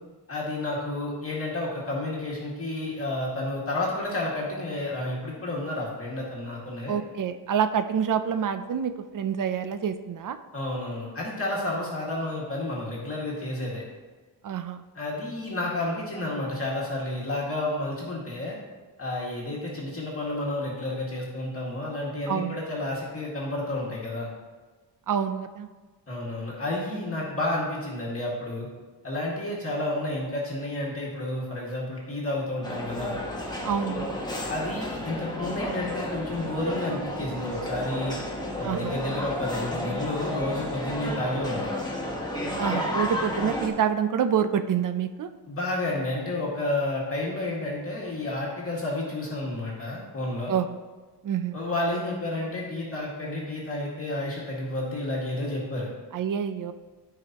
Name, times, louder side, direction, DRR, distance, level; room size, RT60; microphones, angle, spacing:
voice 1, 0.3-7.0 10.5-13.8 14.9-18.6 19.0-24.3 26.1-28.7 29.0-33.2 34.5-38.1 38.6-41.7 45.5-50.5 51.5-55.9, left 2 dB, 30° left, -5 dB, 2.0 m, -31 dB
voice 2, 6.9-10.4 14.4-14.8 22.3-22.6 25.1-25.7 33.6-34.1 38.6-39.0 42.6-45.3 50.5-50.8 51.2-51.6 56.1-56.7, right 8 dB, 50° right, 9 dB, 0.6 m, -27 dB
sound 1, 32.6-43.7, left 1 dB, 10° left, 1.3 m, -32 dB
14.5 x 4.9 x 3.0 m, 1.3 s
wide cardioid pair, 110°, 43 cm